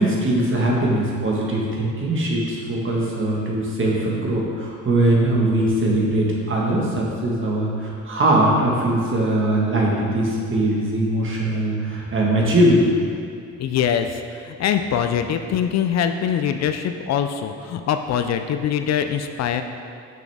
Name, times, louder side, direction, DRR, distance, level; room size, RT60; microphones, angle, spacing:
voice 1, 0.0-12.9, right 1 dB, 40° right, -3 dB, 1.5 m, -21 dB
voice 2, 13.6-19.6, left 8 dB, 60° left, 7 dB, 0.5 m, -23 dB
6.0 x 5.9 x 3.5 m, 2.4 s
cardioid pair, 90°, 30 cm